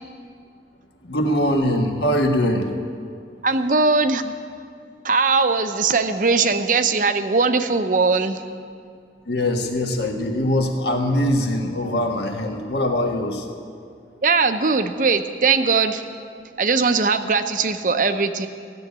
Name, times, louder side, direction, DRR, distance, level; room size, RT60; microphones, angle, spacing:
voice 1, 1.0-2.7 9.3-13.5, left 1 dB, 70° left, 3 dB, 1.4 m, -22 dB
voice 2, 3.4-4.3 5.0-8.4 14.2-16.0 16.6-18.5, right 4 dB, 45° right, 9 dB, 0.6 m, -20 dB
15.5 x 7.2 x 9.5 m, 2.2 s
head